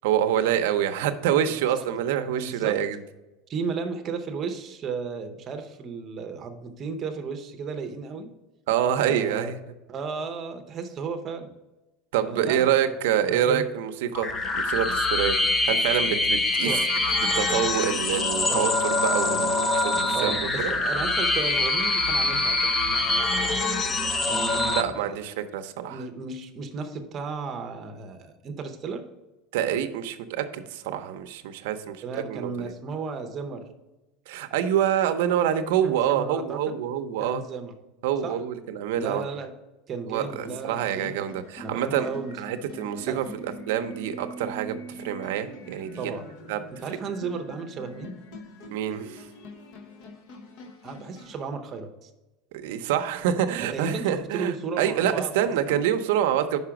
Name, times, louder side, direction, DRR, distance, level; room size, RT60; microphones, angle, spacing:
voice 1, 0.0-3.0 8.7-9.6 12.1-14.3 14.5-15.4 15.7-16.7 17.3-20.7 24.7-26.0 29.5-32.7 34.3-37.4 38.0-39.2 40.1-42.1 42.4-46.1 46.5-46.6 48.7-49.3 52.5-56.6, right 10 dB, 75° right, 8 dB, 0.6 m, -26 dB
voice 2, 2.3-2.8 3.5-8.3 9.0-9.5 9.9-11.5 12.2-12.7 13.3-13.6 16.1-16.2 16.6-16.8 18.5-18.8 19.3-19.4 20.1-23.5 24.3-25.1 25.9-29.0 32.0-33.6 35.8-36.8 37.2-37.7 38.2-38.4 38.9-39.5 39.9-41.2 41.6-42.3 43.1-43.2 46.0-46.2 46.8-48.2 50.8-52.1 53.6-55.8, right 5 dB, 25° right, 6 dB, 0.7 m, -34 dB
sound 1, 14.1-24.8, left 2 dB, 15° left, 0.5 m, -24 dB
sound 2, 40.3-51.4, left 1 dB, 50° left, 0.9 m, -44 dB
5.4 x 4.9 x 5.8 m, 1.1 s
cardioid pair, 170°, 0 cm